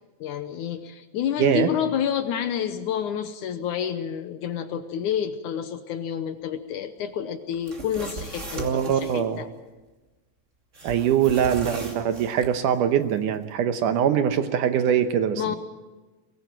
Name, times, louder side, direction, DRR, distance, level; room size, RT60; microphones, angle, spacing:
voice 1, 0.2-9.5 15.4-15.6, left 9 dB, 70° left, 10 dB, 2.1 m, -29 dB
voice 2, 1.4-1.7 8.6-9.4 10.8-15.6, right 9 dB, 70° right, 9 dB, 2.3 m, -23 dB
sound 1, 7.5-9.2 10.7-12.5, right 2 dB, 25° right, 2.3 m, -39 dB
22.5 x 19.0 x 9.1 m, 1.2 s
omnidirectional pair, 4.2 m